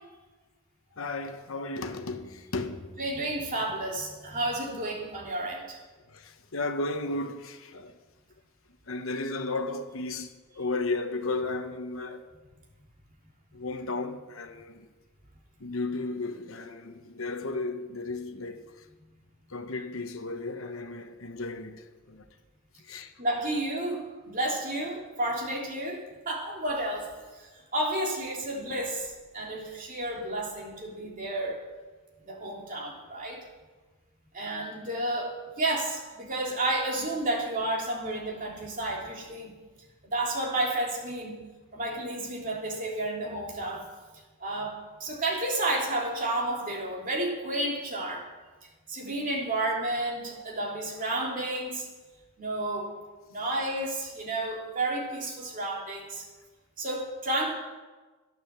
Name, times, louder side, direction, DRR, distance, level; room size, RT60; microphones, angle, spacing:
voice 1, 1.0-3.0 6.1-7.9 8.9-12.3 13.5-14.9 15.6-18.9 19.5-22.2 22.8-23.1, left 3 dB, 65° left, 1.0 m, -34 dB
voice 2, 3.0-5.8 23.2-27.1 27.4-31.6 32.2-33.4 34.3-39.5 40.0-41.4 41.7-43.9 44.4-48.3 48.9-51.9 52.4-52.9 53.3-56.2 56.8-57.5, right 1 dB, 35° right, 2.9 m, -31 dB
13.0 x 10.5 x 7.4 m
head